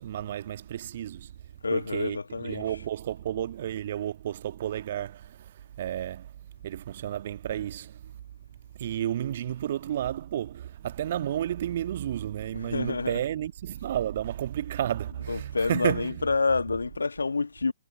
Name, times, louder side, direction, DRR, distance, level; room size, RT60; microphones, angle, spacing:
voice 1, 0.0-8.2 8.7-16.3, right 11 dB, 50° right, 1.5 m, -32 dB
voice 2, 1.6-2.8 12.5-13.2 15.1-17.7, left 4 dB, 70° left, 1.6 m, -28 dB
figure-of-eight pair, 120°, 0 cm